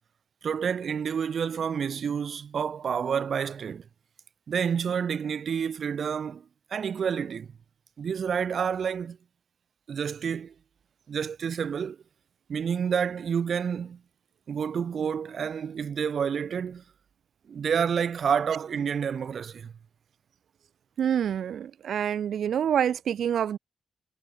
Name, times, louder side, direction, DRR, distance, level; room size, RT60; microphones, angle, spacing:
voice 1, 0.4-3.8 4.5-6.4 6.7-7.5 8.0-9.2 9.9-10.5 11.1-12.0 12.5-14.0 14.5-16.8 17.5-19.7, right 7 dB, 55° right, 4.4 m, -29 dB
voice 2, 21.0-23.6, right 9 dB, 90° right, 4.7 m, -27 dB
wide cardioid pair, 165°, 0 cm